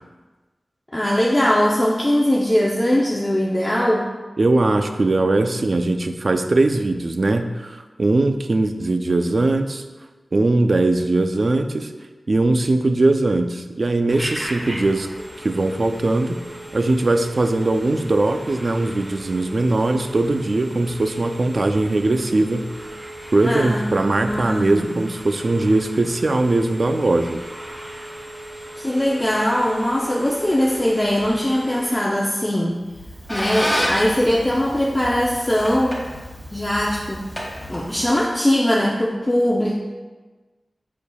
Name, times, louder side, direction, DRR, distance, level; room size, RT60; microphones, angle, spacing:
voice 1, 0.9-4.1 23.4-25.0 28.8-32.8 33.3-36.0 36.5-37.2 37.7-39.7, equal, 20° left, -4 dB, 0.7 m, -20 dB
voice 2, 4.4-9.8 10.3-11.9 12.3-15.1 15.4-16.4 16.7-27.4, right 2 dB, 50° right, 7 dB, 0.5 m, -20 dB
Telephone, 14.1-32.2, right 1 dB, 15° right, 1.0 m, -37 dB
Squeak, 32.8-38.3, equal, 5° left, 1.9 m, -30 dB
8.2 x 6.4 x 2.3 m, 1.3 s
wide cardioid pair, 95°, 0 cm